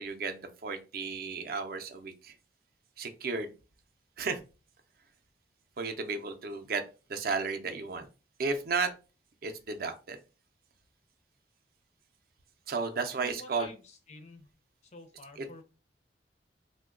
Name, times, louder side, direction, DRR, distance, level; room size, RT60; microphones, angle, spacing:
voice 1, 0.0-2.3 3.0-3.5 4.2-4.4 5.8-6.8 7.1-8.1 8.4-8.9 9.4-10.2 12.7-13.7 15.4-15.5, right 4 dB, 55° right, 7 dB, 0.4 m, -33 dB
voice 2, 12.8-14.5 14.9-15.6, left 2 dB, 40° left, 5 dB, 0.5 m, -50 dB
2.9 x 2.1 x 3.6 m, 0.32 s
head